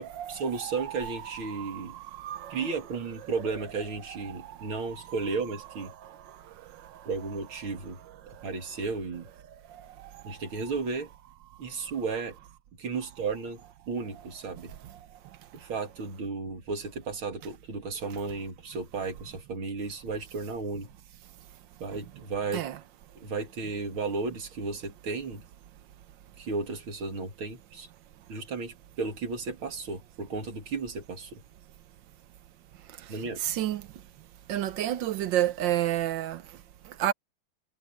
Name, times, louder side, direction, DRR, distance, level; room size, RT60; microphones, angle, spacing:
voice 1, 0.0-2.0 2.5-5.9 7.0-8.0 8.3-9.3 10.2-11.1 11.6-12.4 12.8-14.7 15.5-20.9 21.8-22.7 23.1-25.4 26.4-27.9 28.3-31.4 33.1-33.4, right 4 dB, 85° right, 3.3 m, -34 dB
voice 2, 0.6-1.1 1.6-1.8 2.2-2.5 22.5-22.8 33.4-33.8 34.5-36.4 37.0-37.1, right 12 dB, 70° right, 1.4 m, -29 dB
omnidirectional pair, 2.2 m